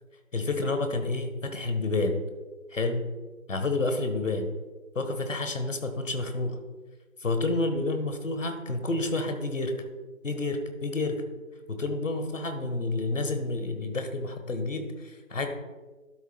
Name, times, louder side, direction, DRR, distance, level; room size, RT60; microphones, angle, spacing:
voice 1, 0.3-2.2 2.7-3.1 3.5-4.5 4.9-6.6 7.2-9.8 10.2-11.2 11.7-15.5, left 2 dB, 65° left, 7 dB, 1.3 m, -29 dB
12.0 x 7.1 x 2.2 m, 1.3 s
figure-of-eight pair, 170°, 41 cm